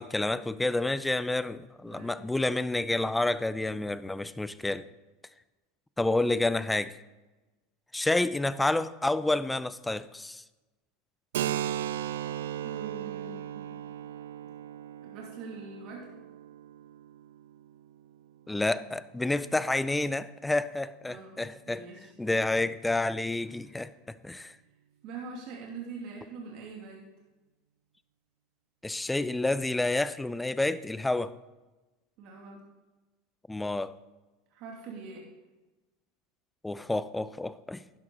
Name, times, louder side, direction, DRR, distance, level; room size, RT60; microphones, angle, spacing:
voice 1, 0.0-4.8 6.0-6.9 7.9-10.4 18.5-21.8 22.2-24.6 28.8-31.3 33.5-33.9 36.6-37.8, left 2 dB, 10° left, 0.6 m, -29 dB
voice 2, 1.8-2.3 12.6-13.8 14.4-14.5 15.0-16.1 21.1-22.1 23.6-23.8 25.0-27.1 32.2-32.6 34.5-35.3, right 4 dB, 55° right, 2.4 m, -43 dB
Keyboard (musical), 11.3-18.7, right 11 dB, 80° right, 0.6 m, -37 dB
12.0 x 11.0 x 3.9 m
hypercardioid pair, 90°, 0 cm